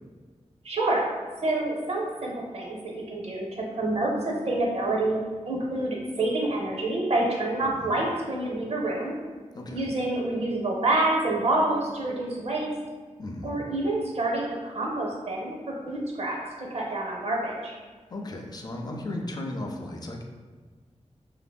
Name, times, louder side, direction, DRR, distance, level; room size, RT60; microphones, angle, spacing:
voice 1, 0.6-1.1 1.4-5.2 5.5-9.1 9.7-12.7 13.4-17.7, right 2 dB, 55° right, -2 dB, 0.5 m, -27 dB
voice 2, 9.5-9.9 13.2-13.6 18.1-20.2, left 1 dB, 35° left, 1 dB, 0.4 m, -35 dB
2.8 x 2.5 x 2.2 m, 1.4 s
cardioid pair, 55°, 12 cm